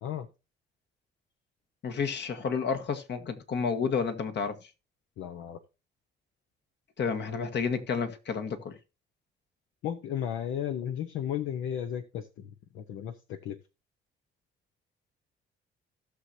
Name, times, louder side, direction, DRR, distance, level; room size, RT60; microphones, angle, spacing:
voice 1, 1.8-4.7 7.0-8.8, left 6 dB, 60° left, 1.6 m, -31 dB
voice 2, 5.2-5.6 9.8-13.6, left 10 dB, 80° left, 0.9 m, -34 dB
16.5 x 6.4 x 2.8 m
cardioid pair, 90°, 20 cm